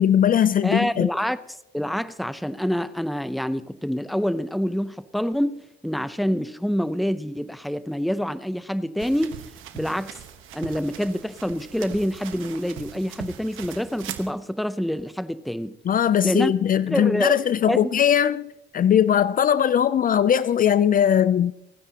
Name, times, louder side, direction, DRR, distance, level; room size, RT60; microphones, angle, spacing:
voice 1, 0.0-1.1 15.9-21.5, left 9 dB, 45° left, 0.4 m, -20 dB
voice 2, 0.6-1.4 1.7-9.4 9.7-10.2 10.5-15.8 16.2-17.3 17.7-17.9, equal, ahead, 0.7 m, -26 dB
sound 1, 9.0-14.3, right 10 dB, 90° right, 1.1 m, -40 dB
29.5 x 9.8 x 2.9 m
cardioid pair, 90°, 20 cm